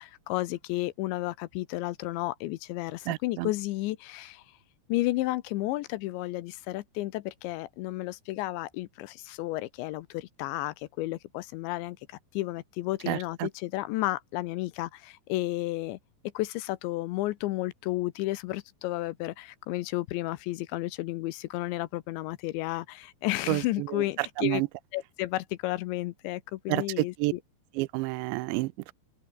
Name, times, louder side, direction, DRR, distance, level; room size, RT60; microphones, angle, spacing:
voice 1, 0.0-4.4 4.9-16.0 16.3-24.6 24.9-27.4, left 17 dB, 80° left, 3.0 m, -32 dB
voice 2, 3.1-3.5 13.1-13.5 23.5-24.7 26.7-27.3 27.8-28.9, right 22 dB, 80° right, 2.7 m, -30 dB
open air
omnidirectional pair, 5.5 m